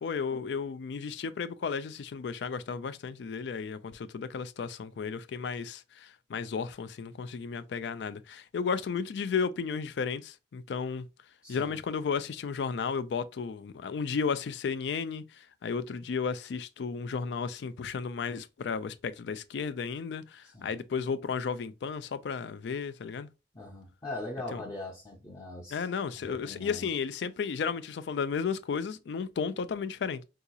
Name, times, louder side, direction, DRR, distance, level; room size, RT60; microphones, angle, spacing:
voice 1, 0.0-11.1 11.5-23.3 24.5-24.6 25.7-30.2, left 5 dB, 70° left, 0.4 m, -33 dB
voice 2, 11.4-11.8 20.4-20.7 23.5-25.9 26.2-26.9, left 2 dB, 20° left, 0.6 m, -41 dB
3.7 x 2.8 x 2.3 m
head